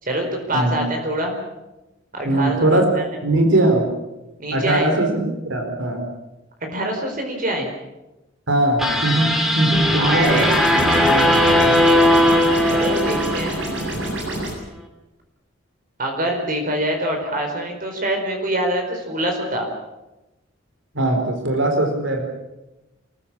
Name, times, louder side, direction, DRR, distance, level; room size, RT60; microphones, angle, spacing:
voice 1, 0.0-1.3 2.1-3.0 4.4-4.9 6.7-7.7 10.0-10.6 12.7-13.6 16.0-19.7, right 1 dB, 45° right, 3 dB, 4.6 m, -24 dB
voice 2, 0.5-0.8 2.2-2.9 3.2-3.9 4.5-6.1 8.5-10.5 11.0-11.8 20.9-22.2, right 1 dB, 85° right, 4 dB, 4.5 m, -20 dB
sound 1, 8.8-14.1, left 1 dB, ahead, 3.0 m, -18 dB
sound 2, 10.1-14.5, right 1 dB, 70° right, 7.9 m, -27 dB
27.5 x 15.5 x 8.8 m, 1.0 s
head